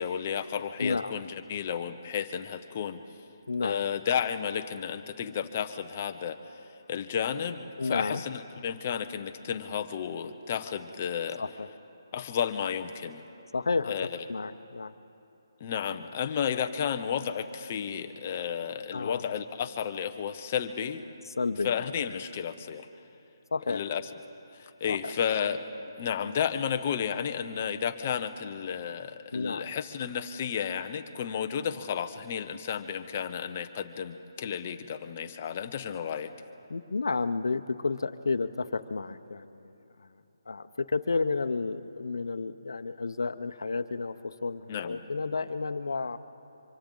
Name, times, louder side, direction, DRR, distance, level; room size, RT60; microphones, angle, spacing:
voice 1, 0.0-3.0 3.6-6.4 6.9-11.4 12.1-13.2 13.9-14.2 15.6-21.0 21.6-22.9 23.7-24.0 24.5-25.6 26.0-36.3 44.7-45.0, left 8 dB, 20° left, 8 dB, 0.5 m, -32 dB
voice 2, 0.8-1.1 3.5-3.8 7.8-8.2 11.4-11.7 13.5-13.9 14.3-14.9 18.9-19.2 21.4-21.9 23.5-23.8 24.9-25.1 29.3-29.6 36.7-39.4 40.5-46.2, left 4 dB, 70° left, 10 dB, 0.7 m, -31 dB
30.0 x 25.0 x 3.8 m, 2.8 s
hypercardioid pair, 180°, 2 cm